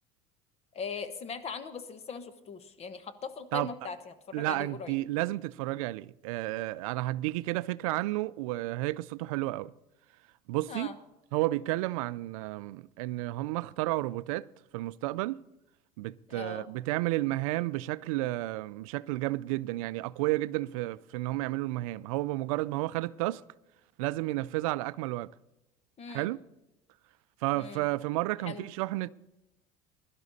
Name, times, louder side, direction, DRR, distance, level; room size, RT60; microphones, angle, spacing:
voice 1, 0.7-4.9 10.7-11.0 16.3-16.7 26.0-26.3 27.5-27.8 28.5-28.7, left 5 dB, 40° left, 1.2 m, -40 dB
voice 2, 4.3-9.7 10.5-10.9 11.3-14.5 14.7-15.4 16.0-23.4 24.0-25.3 26.1-26.4 27.4-29.1, right 18 dB, 90° right, 0.4 m, -31 dB
16.5 x 12.0 x 4.1 m
supercardioid pair, 110°, 17 cm